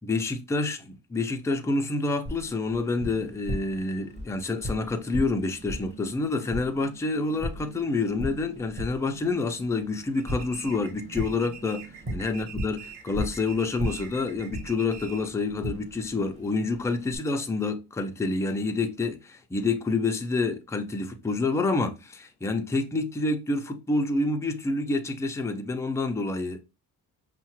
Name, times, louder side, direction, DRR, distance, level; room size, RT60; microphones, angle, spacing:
voice 1, 0.0-26.7, left 3 dB, 10° left, 0.3 m, -28 dB
Tap, 2.3-17.2, equal, 20° right, 0.9 m, -38 dB
sound 1, 10.1-15.4, right 7 dB, 85° right, 0.9 m, -45 dB
5.4 x 2.1 x 2.9 m
cardioid pair, 140°, 38 cm